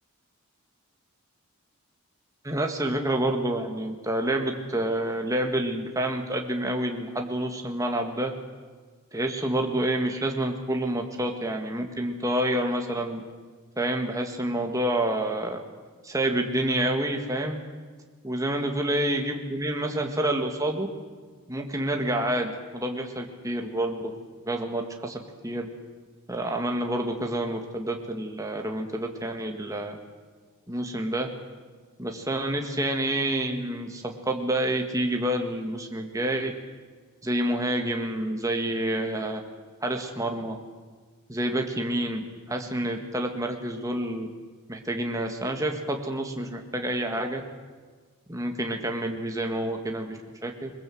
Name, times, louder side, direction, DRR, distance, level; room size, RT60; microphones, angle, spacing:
voice 1, 2.4-8.3 9.1-13.2 13.8-15.6 16.0-17.6 18.2-20.9 21.5-24.1 24.5-25.7 26.3-30.0 30.7-31.3 32.0-36.5 37.2-39.4 39.8-40.6 41.3-44.3 44.7-47.4 48.3-50.7, right 1 dB, 15° right, 3 dB, 1.8 m, -28 dB
22.0 x 21.5 x 7.8 m, 1.5 s
head